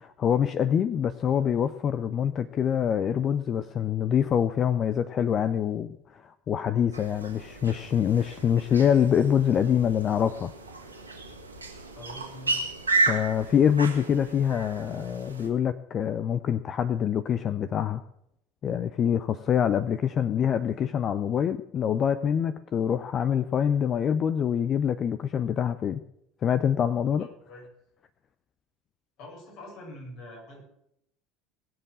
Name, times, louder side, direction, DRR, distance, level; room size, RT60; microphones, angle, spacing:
voice 1, 0.0-10.5 13.1-18.0 18.6-26.0 26.4-27.3, left 8 dB, 40° left, 13 dB, 0.7 m, -25 dB
sound 1, 6.9-15.5, right 3 dB, 90° right, 2.3 m, -33 dB
voice 2, 11.9-12.7 27.2-27.7 29.2-30.6, left 1 dB, 55° left, -1 dB, 7.3 m, -44 dB
20.5 x 7.8 x 6.3 m, 0.77 s
figure-of-eight pair, 70°, 0 cm